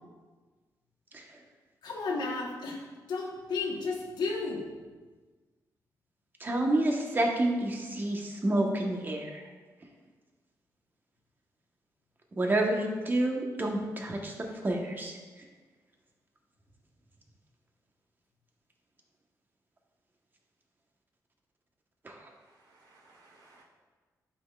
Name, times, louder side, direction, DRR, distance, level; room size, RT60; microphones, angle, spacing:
voice 1, 1.8-4.7, left 4 dB, 80° left, -1 dB, 1.3 m, -33 dB
voice 2, 6.4-9.4 12.3-14.3 14.6-15.1 22.0-22.1, right 1 dB, 30° right, 1 dB, 1.1 m, -29 dB
voice 3, 22.4-23.6, right 3 dB, 80° right, -3 dB, 2.0 m, -60 dB
11.5 x 5.7 x 2.4 m, 1.4 s
cardioid pair, 110°, 7 cm